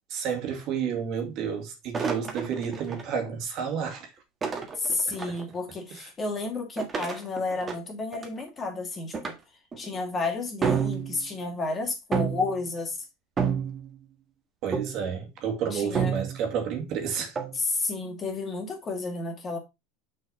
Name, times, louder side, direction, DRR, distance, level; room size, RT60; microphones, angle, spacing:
voice 1, 0.1-4.1 5.1-5.4 5.9-6.1 14.6-17.3, right 7 dB, 50° right, 2.2 m, -31 dB
sound 1, 1.9-3.0 4.4-5.4 6.8-8.4 9.1-9.3 9.7-10.0 10.6-11.4 12.1-12.6 13.4-14.0 14.7-15.1 15.9-16.5 17.3-17.6, right 6 dB, 20° right, 1.6 m, -29 dB
voice 2, 4.8-9.3 9.8-13.0 15.7-16.2 17.5-19.6, left 3 dB, 25° left, 2.2 m, -31 dB
6.2 x 5.5 x 4.0 m
supercardioid pair, 140°, 0 cm